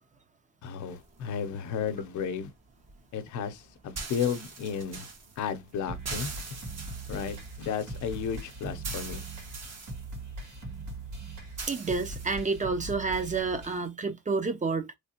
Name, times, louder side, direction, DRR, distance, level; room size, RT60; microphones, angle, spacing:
voice 1, 0.6-2.5 3.1-5.1 5.4-6.3 7.1-9.2, left 7 dB, 75° left, 0.7 m, -33 dB
sound 1, 0.9-12.3, right 4 dB, 60° right, 1.6 m, -44 dB
sound 2, 5.9-13.9, right 2 dB, 80° right, 2.1 m, -41 dB
voice 2, 11.7-15.0, right 4 dB, 25° right, 0.6 m, -29 dB
3.3 x 3.2 x 2.8 m
cardioid pair, 90°, 30 cm